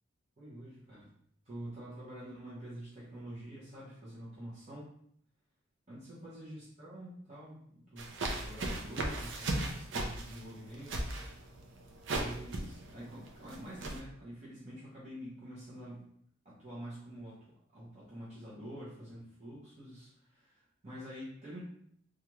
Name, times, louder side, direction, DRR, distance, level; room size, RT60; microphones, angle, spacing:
voice 1, 0.4-1.1 1.4-4.9 5.9-11.1 12.1-16.0 16.4-17.4 17.7-21.6, right 1 dB, 35° right, -9 dB, 0.9 m, -47 dB
sound 1, 8.0-14.0, right 2 dB, 60° right, 0.5 m, -37 dB
3.2 x 2.4 x 2.9 m, 0.67 s
head